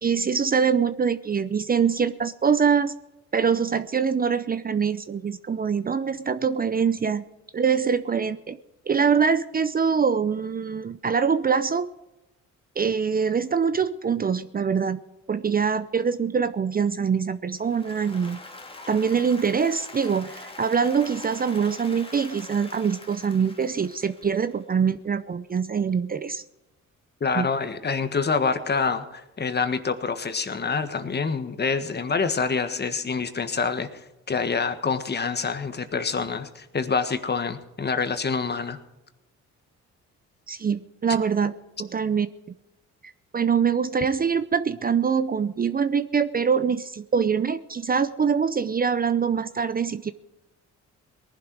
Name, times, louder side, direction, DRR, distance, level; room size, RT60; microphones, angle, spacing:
voice 1, 0.0-2.9 3.3-7.2 7.5-8.6 8.9-11.9 12.8-15.0 15.3-18.4 18.9-26.4 27.4-27.5 40.5-41.5 41.8-42.3 43.3-50.1, right 6 dB, 30° right, 14 dB, 0.6 m, -24 dB
Applause, 17.6-24.8, left 2 dB, 20° left, 2.1 m, -44 dB
voice 2, 27.2-33.9 34.3-38.8, left 5 dB, 35° left, 9 dB, 1.6 m, -26 dB
19.0 x 11.0 x 4.7 m, 0.97 s
cardioid pair, 90°, 30 cm